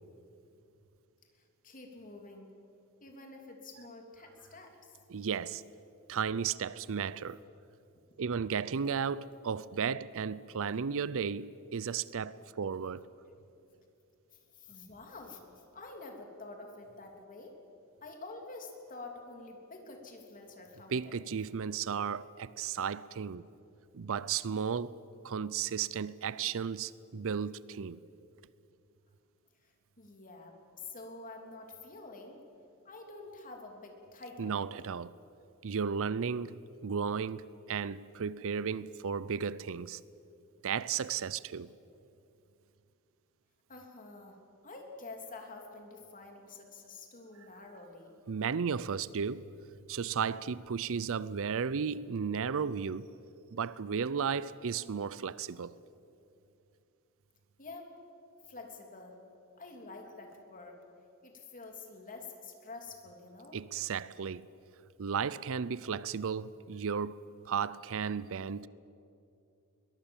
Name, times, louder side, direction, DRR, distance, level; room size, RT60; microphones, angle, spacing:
voice 1, 1.3-2.5 3.0-5.0 14.3-17.6 18.0-21.2 29.6-32.4 32.8-34.7 43.7-44.4 44.6-48.2 57.6-57.9 58.5-59.2 59.6-60.8 61.2-63.6, left 3 dB, 40° left, 3.3 m, -48 dB
voice 2, 5.1-5.6 6.1-7.4 8.2-13.1 20.9-23.4 23.9-25.0 25.2-28.0 34.4-35.1 35.6-40.0 40.6-41.7 48.3-49.5 49.9-53.1 53.5-55.7 63.5-64.5 65.0-68.7, right 6 dB, 65° right, 0.5 m, -34 dB
22.0 x 22.0 x 7.3 m
head